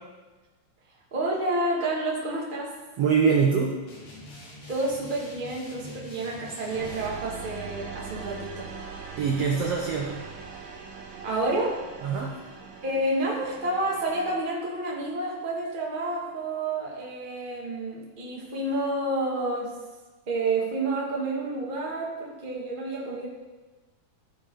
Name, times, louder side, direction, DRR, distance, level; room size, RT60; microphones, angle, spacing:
voice 1, 1.1-2.7 4.7-8.7 11.2-11.7 12.8-19.7 20.3-23.3, right 2 dB, 20° right, -4 dB, 1.5 m, -29 dB
voice 2, 3.0-3.7 9.2-10.2 12.0-12.3, right 6 dB, 65° right, 0 dB, 1.6 m, -23 dB
sound 1, 3.9-7.1, left 1 dB, 75° left, 3.9 m, -45 dB
sound 2, 6.7-14.4, right 5 dB, 80° right, 3.0 m, -41 dB
16.0 x 6.1 x 4.8 m, 1.3 s
omnidirectional pair, 4.0 m